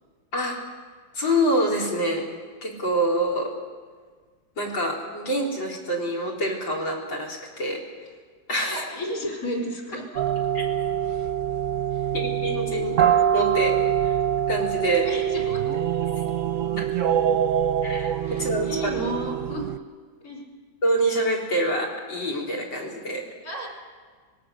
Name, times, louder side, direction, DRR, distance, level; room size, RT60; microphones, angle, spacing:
voice 1, 1.1-2.3 2.6-3.5 4.6-7.8 8.5-8.9 10.5-10.6 12.1-14.2 14.5-15.1 16.8-16.9 17.8-19.1 20.8-23.3, right 1 dB, 85° left, 1 dB, 4.7 m, -26 dB
voice 2, 8.6-10.3 14.8-15.6 18.2-19.7 20.2-20.4 23.4-23.7, equal, 50° left, -1 dB, 4.8 m, -33 dB
sound 1, 10.1-19.8, right 9 dB, 55° right, 0.9 m, -24 dB
25.5 x 20.5 x 6.5 m, 1.6 s
omnidirectional pair, 2.0 m